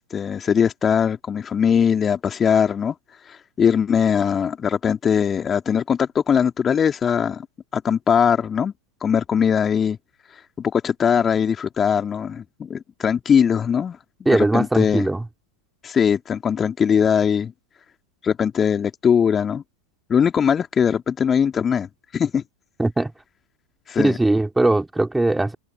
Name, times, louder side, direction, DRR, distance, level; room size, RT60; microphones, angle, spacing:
voice 1, 0.0-2.9 3.2-7.5 7.7-8.7 9.0-10.0 10.6-14.0 14.3-15.1 15.8-17.5 18.2-19.6 20.1-21.9 22.1-22.4 23.9-24.2, left 7 dB, 20° left, 2.7 m, -20 dB
voice 2, 14.3-15.2 22.8-23.1 24.0-25.5, right 2 dB, 5° right, 4.2 m, -20 dB
figure-of-eight pair, 90°, 0 cm